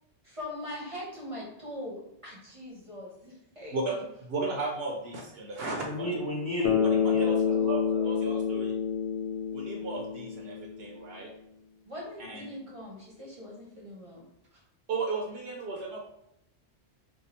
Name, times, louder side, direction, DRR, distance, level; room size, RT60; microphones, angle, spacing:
voice 1, 0.2-4.0 11.9-14.3 14.5-14.6, left 1 dB, 35° right, -4 dB, 0.7 m, -42 dB
voice 2, 4.3-6.1 7.0-7.4 8.0-8.7 9.5-11.3 12.2-12.5 14.9-16.0, right 3 dB, 65° right, 0 dB, 0.8 m, -34 dB
voice 3, 5.8-8.1, equal, 20° left, -5 dB, 0.9 m, -34 dB
Bass guitar, 6.6-10.9, left 7 dB, 75° left, 0.9 m, -28 dB
2.7 x 2.3 x 4.1 m, 0.79 s
omnidirectional pair, 1.2 m